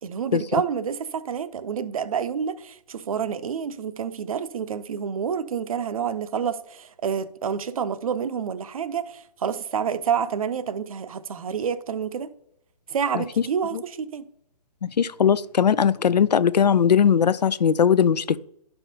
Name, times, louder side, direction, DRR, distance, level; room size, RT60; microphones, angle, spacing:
voice 1, 0.0-12.3 12.9-14.3, right 7 dB, 60° right, 0.6 m, -28 dB
voice 2, 14.8-18.4, left 7 dB, 85° left, 0.4 m, -19 dB
11.0 x 5.6 x 2.7 m
figure-of-eight pair, 135°, 21 cm